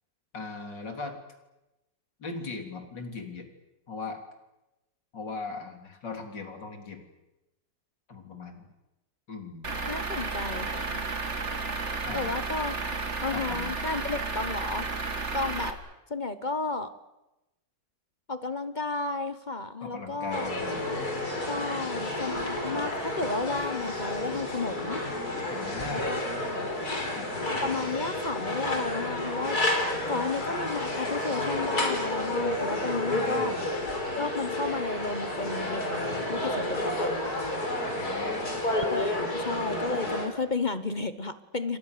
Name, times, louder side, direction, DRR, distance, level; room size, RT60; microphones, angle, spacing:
voice 1, 0.3-1.2 2.2-3.5 3.9-4.2 5.1-7.1 8.1-8.7 9.3-9.7 12.0-12.3 13.3-13.7 19.8-20.8 25.5-26.2 27.1-27.5 33.1-33.7 37.8-38.5, left 4 dB, 70° left, 4 dB, 4.2 m, -39 dB
Truck / Idling, 9.6-15.7, right 4 dB, 40° right, 2.3 m, -32 dB
voice 2, 9.9-11.0 12.1-12.7 13.2-14.9 15.3-15.8 16.1-16.9 18.3-20.5 21.5-25.0 25.9-26.2 27.6-29.6 30.1-33.6 34.2-37.1 38.7-41.8, left 3 dB, 30° left, 12 dB, 1.0 m, -33 dB
sound 1, 20.3-40.3, left 1 dB, 55° left, 5.2 m, -30 dB
29.0 x 25.0 x 6.9 m, 0.99 s
omnidirectional pair, 2.0 m